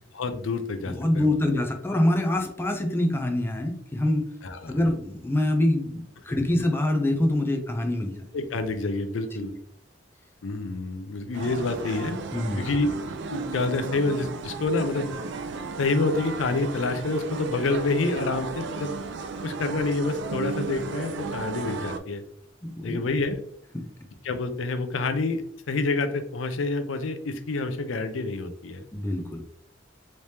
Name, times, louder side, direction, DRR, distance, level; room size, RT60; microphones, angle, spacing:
voice 1, 0.1-1.3 4.4-4.8 8.3-9.5 10.4-12.2 12.6-12.9 13.3-15.2 15.8-18.9 19.4-22.2 22.8-23.4 24.2-28.8, left 3 dB, 80° left, 8 dB, 0.5 m, -28 dB
voice 2, 0.9-4.3 4.7-8.2 9.3-9.5 12.3-12.6 22.6-23.0 23.7-23.9 28.9-29.4, left 1 dB, 10° left, 4 dB, 0.4 m, -25 dB
sound 1, 11.3-22.0, right 4 dB, 65° right, 0.4 m, -35 dB
3.3 x 3.1 x 2.7 m, 0.66 s
head